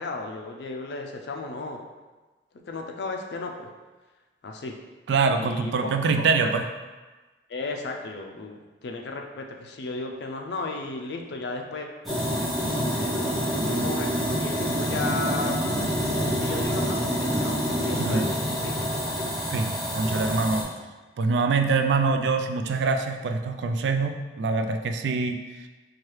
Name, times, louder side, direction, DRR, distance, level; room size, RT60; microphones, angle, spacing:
voice 1, 0.0-1.8 2.7-3.7 4.4-4.7 5.4-5.9 6.2-6.5 7.5-11.9 12.4-12.5 13.0-14.1 14.4-15.6 16.3-18.9, left 3 dB, 75° left, 2 dB, 0.4 m, -35 dB
voice 2, 5.1-6.6 18.0-18.3 19.5-20.7 21.2-25.7, right 4 dB, 80° right, 6 dB, 0.3 m, -24 dB
sound 1, 12.0-20.6, equal, ahead, 0.8 m, -27 dB
4.5 x 2.3 x 3.1 m, 1.2 s
head